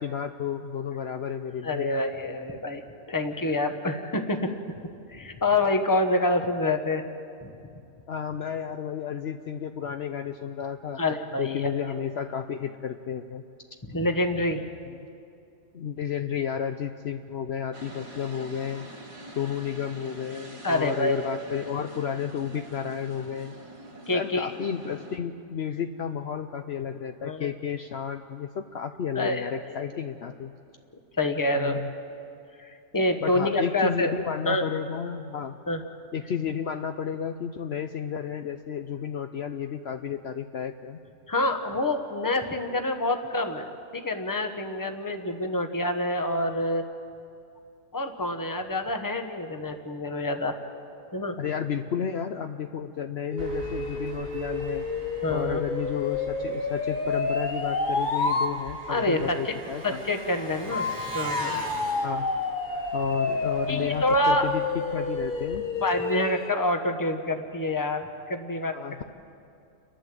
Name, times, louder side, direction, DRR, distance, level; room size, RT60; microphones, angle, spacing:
voice 1, 0.0-1.9 8.1-13.4 15.7-18.8 19.4-23.5 24.1-30.5 31.5-31.9 33.2-35.6 36.1-41.0 51.4-54.9 55.3-60.0 62.0-62.3 62.9-65.6 68.7-69.0, left 8 dB, 60° left, 7 dB, 0.9 m, -32 dB
voice 2, 1.6-2.8 3.1-4.5 5.1-7.0 11.0-11.7 13.8-14.6 20.6-21.3 24.1-24.5 27.2-27.5 29.1-29.8 31.2-31.8 32.6-34.1 34.5-34.6 35.7-35.8 41.3-46.8 47.9-50.6 51.1-51.3 55.2-55.6 58.9-59.5 59.8-60.9 61.1-61.6 63.7-64.5 65.8-68.7, left 2 dB, 15° left, 6 dB, 1.1 m, -27 dB
sound 1, 17.7-25.2, right 1 dB, 25° right, 1.5 m, -45 dB
sound 2, 53.3-58.5 60.7-66.6, left 3 dB, 40° left, 1.3 m, -29 dB
Engine, 53.4-65.6, right 2 dB, 80° right, 2.6 m, -43 dB
29.5 x 11.5 x 7.6 m, 2.6 s
omnidirectional pair, 1.3 m